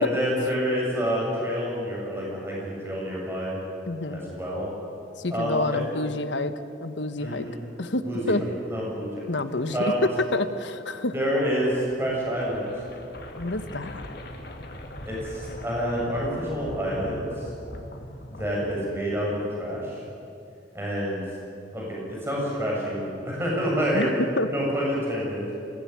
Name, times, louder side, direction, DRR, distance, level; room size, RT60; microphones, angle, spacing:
voice 1, 0.0-3.6 4.1-4.7 5.3-5.8 7.2-7.6 8.0-9.3 9.7-9.9 11.1-12.7 15.0-17.5 18.3-20.0 20.7-21.2 21.7-24.0 24.5-25.5, equal, 15° right, -4 dB, 6.8 m, -28 dB
voice 2, 3.9-4.2 5.2-6.5 6.8-7.5 7.8-8.4 9.3-9.8 10.3-11.1 13.4-14.0 23.9-24.1 24.4-24.5, left 2 dB, 80° left, 10 dB, 1.3 m, -28 dB
sound 1, 11.6-19.3, equal, 55° left, 2.4 m, -41 dB
22.0 x 17.5 x 9.7 m, 2.6 s
head